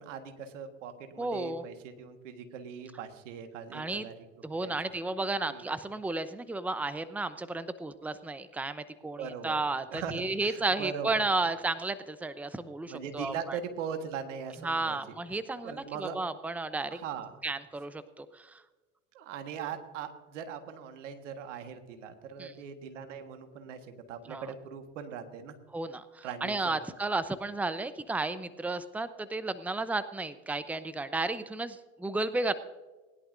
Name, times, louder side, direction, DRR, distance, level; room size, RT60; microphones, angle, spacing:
voice 1, 0.0-4.3 4.6-4.8 5.5-5.7 9.2-11.2 12.8-15.0 15.6-16.2 16.9-17.3 19.1-23.8 24.1-25.6 26.2-26.9, right 7 dB, 85° right, 7 dB, 1.6 m, -40 dB
voice 2, 1.2-1.7 3.7-4.0 4.4-13.6 14.6-17.0 17.4-18.6 22.4-22.5 24.3-24.4 25.7-32.5, right 3 dB, 5° right, 13 dB, 0.7 m, -33 dB
20.0 x 11.0 x 2.6 m, 1.2 s
hypercardioid pair, 75°, 36 cm